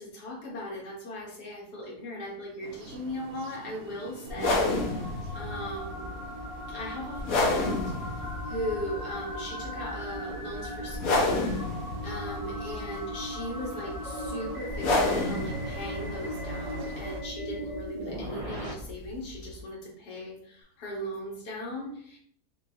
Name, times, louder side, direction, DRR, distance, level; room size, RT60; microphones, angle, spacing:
voice 1, 0.0-6.2 6.7-11.5 12.0-22.2, equal, 80° left, -2 dB, 1.7 m, -38 dB
sound 1, 2.6-17.2, right 2 dB, 70° right, 1.0 m, -46 dB
sound 2, 3.6-18.7, equal, 45° right, 0.4 m, -39 dB
sound 3, 4.3-19.6, left 2 dB, 65° left, 1.2 m, -31 dB
5.9 x 2.4 x 2.8 m, 0.64 s
omnidirectional pair, 1.7 m